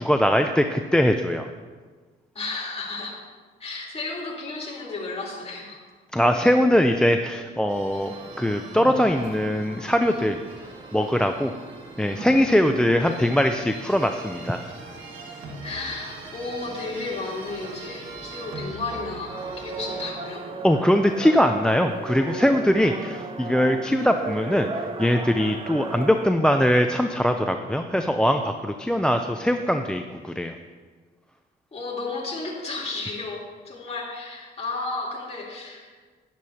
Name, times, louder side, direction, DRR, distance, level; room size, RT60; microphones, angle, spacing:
voice 1, 0.0-1.5 6.1-10.4 10.9-11.5 12.0-14.6 20.6-30.5, equal, 5° left, 6 dB, 0.5 m, -21 dB
voice 2, 2.3-3.1 3.6-5.8 6.4-6.5 12.0-12.6 15.6-20.4 31.7-35.9, left 3 dB, 30° left, -5 dB, 3.4 m, -33 dB
sound 1, 7.7-20.1, right 3 dB, 80° right, 1.5 m, -43 dB
sound 2, 8.1-26.3, right 3 dB, 25° right, 0.8 m, -38 dB
11.5 x 10.5 x 2.8 m, 1.4 s
cardioid pair, 90°, 20 cm